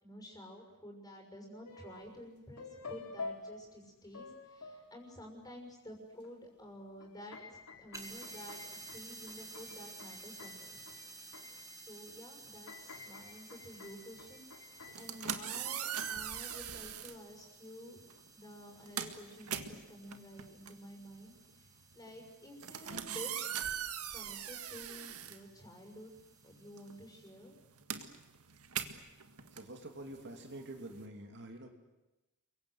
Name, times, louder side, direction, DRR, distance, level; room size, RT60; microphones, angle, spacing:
voice 1, 0.0-10.8 11.7-18.0 18.3-23.5 24.1-26.1 26.4-27.5, equal, 15° left, 2 dB, 6.2 m, -51 dB
sound 1, 1.6-2.2 2.6-5.5 6.2-6.3 6.7-12.0 12.4-16.9, left 3 dB, 90° left, 3.5 m, -50 dB
sound 2, 7.9-27.3, right 3 dB, 15° right, 1.8 m, -54 dB
sound 3, 14.8-17.2 18.1-18.3 18.6-26.1 26.4-31.0, right 9 dB, 80° right, 1.9 m, -41 dB
voice 2, 29.5-31.7, right 1 dB, 55° right, 4 dB, 2.7 m, -47 dB
29.5 x 23.5 x 8.1 m, 1.0 s
head